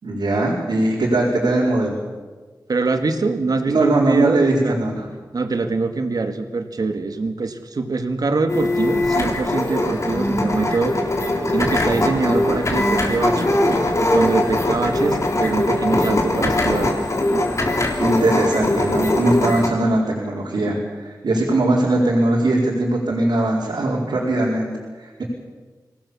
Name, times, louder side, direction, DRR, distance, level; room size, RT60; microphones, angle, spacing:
voice 1, 0.0-2.0 3.7-5.1 18.0-24.7 25.0-25.2, right 2 dB, 85° right, -5 dB, 4.8 m, -20 dB
voice 2, 2.7-4.8 5.3-11.0 11.5-13.6 14.0-17.0, right 3 dB, 60° right, 7 dB, 2.2 m, -23 dB
sound 1, 8.5-19.7, left 1 dB, 45° left, 3.6 m, -21 dB
25.0 x 18.5 x 7.3 m, 1.4 s
wide cardioid pair, 105°, 7 cm